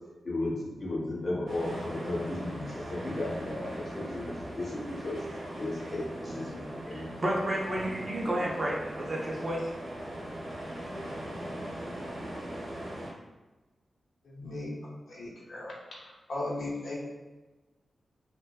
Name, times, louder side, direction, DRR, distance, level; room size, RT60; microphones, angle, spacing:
voice 1, 0.2-4.2 4.6-5.2 5.6-7.1, left 2 dB, 40° left, -5 dB, 0.8 m, -35 dB
sound 1, 1.5-13.1, right 1 dB, 65° right, 0.9 m, -39 dB
voice 2, 6.9-9.7, right 1 dB, 35° right, -3 dB, 0.5 m, -31 dB
voice 3, 14.2-14.7 15.1-17.0, left 2 dB, 75° left, -5 dB, 0.7 m, -37 dB
2.5 x 2.1 x 2.3 m, 1.2 s
wide cardioid pair, 135°, 0 cm